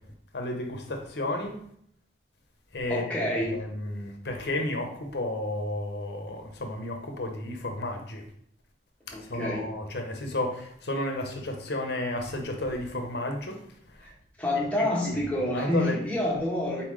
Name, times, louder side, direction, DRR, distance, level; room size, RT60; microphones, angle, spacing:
voice 1, 0.3-1.6 2.7-8.2 9.1-13.6 13.9-14.1 14.5-15.2 15.5-16.0, left 1 dB, 65° left, 3 dB, 0.8 m, -32 dB
voice 2, 2.9-3.6 9.1-9.7 14.4-16.8, left 1 dB, 10° left, -4 dB, 1.0 m, -28 dB
4.3 x 3.7 x 3.2 m, 0.66 s
head